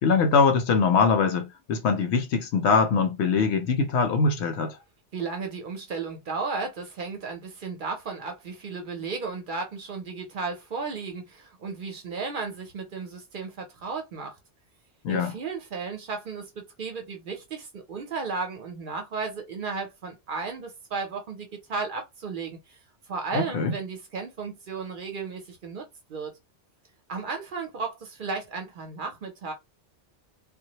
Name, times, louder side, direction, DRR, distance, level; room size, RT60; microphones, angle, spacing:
voice 1, 0.0-4.8 15.0-15.3 23.3-23.7, left 5 dB, 80° left, 0.9 m, -22 dB
voice 2, 5.1-14.4 15.1-22.8 23.1-25.8 26.1-26.3 27.1-29.5, right 4 dB, 55° right, 0.7 m, -34 dB
2.2 x 2.0 x 2.8 m
omnidirectional pair, 1.1 m